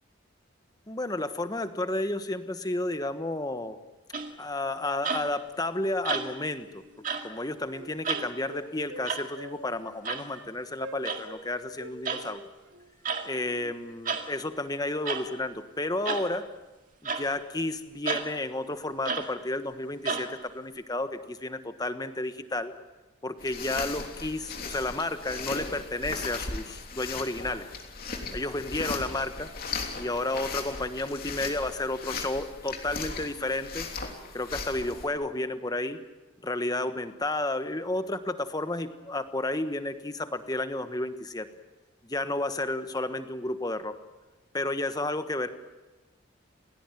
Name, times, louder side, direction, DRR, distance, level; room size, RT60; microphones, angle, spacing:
voice 1, 0.9-3.8 4.4-6.8 7.2-12.4 13.2-16.4 17.0-22.7 23.2-27.7 28.3-29.5 29.9-33.9 34.3-36.0 36.4-41.5 42.0-43.9 44.5-45.5, left 2 dB, 20° left, 9 dB, 1.3 m, -32 dB
sound 1, 4.1-4.5 5.0-5.4 6.1-6.5 7.0-7.3 8.0-8.3 9.1-9.3 10.1-10.3 11.0-11.2 12.1-12.3 13.1-13.3 14.1-14.3 15.1-15.3 16.1-16.3 17.1-17.3 18.1-18.3 19.1-19.3 20.1-20.3, right 5 dB, 40° right, 2.2 m, -31 dB
Wind instrument woodwind instrument, 6.8-7.0 7.3-9.1 9.3-9.6 9.8-10.0 10.3-10.5 10.8-11.4 11.8-13.6, right 1 dB, 90° right, 4.6 m, -45 dB
sound 2, 23.4-35.1, left 4 dB, 45° left, 3.3 m, -37 dB
29.5 x 17.0 x 9.3 m, 1.2 s
head